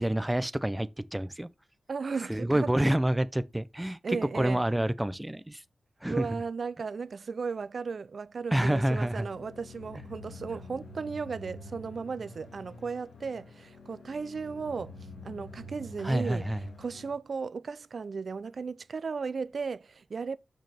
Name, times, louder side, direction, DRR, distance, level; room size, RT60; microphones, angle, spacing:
voice 1, 0.0-1.5 2.3-5.6 6.0-6.4 8.5-9.3 16.0-16.6, right 1 dB, 10° right, 0.5 m, -28 dB
voice 2, 1.9-2.7 4.0-4.6 6.1-15.0 15.2-16.5 16.8-20.4, right 5 dB, 60° right, 0.5 m, -35 dB
sound 1, 8.6-17.1, left 1 dB, 70° left, 2.1 m, -47 dB
6.4 x 6.3 x 3.4 m
wide cardioid pair, 95°, 0 cm